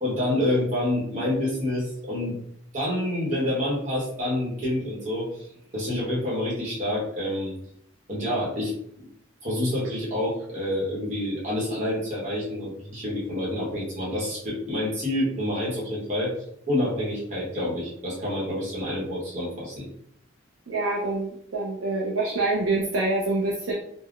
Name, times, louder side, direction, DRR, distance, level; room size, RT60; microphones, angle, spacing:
voice 1, 0.0-2.4 2.7-5.4 5.7-7.5 8.1-8.7 9.4-16.3 16.7-19.9, left 1 dB, 40° right, -6 dB, 0.9 m, -27 dB
voice 2, 20.7-23.7, right 2 dB, 85° right, -4 dB, 0.6 m, -26 dB
3.6 x 2.0 x 2.3 m, 0.71 s
head